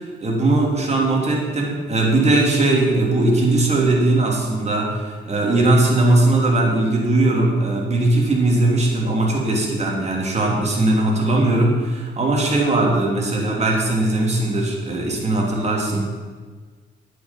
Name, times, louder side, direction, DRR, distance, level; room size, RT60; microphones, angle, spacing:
voice 1, 0.2-16.0, right 2 dB, 35° right, -1 dB, 3.0 m, -19 dB
9.4 x 8.5 x 5.9 m, 1.4 s
cardioid pair, 90°, 20 cm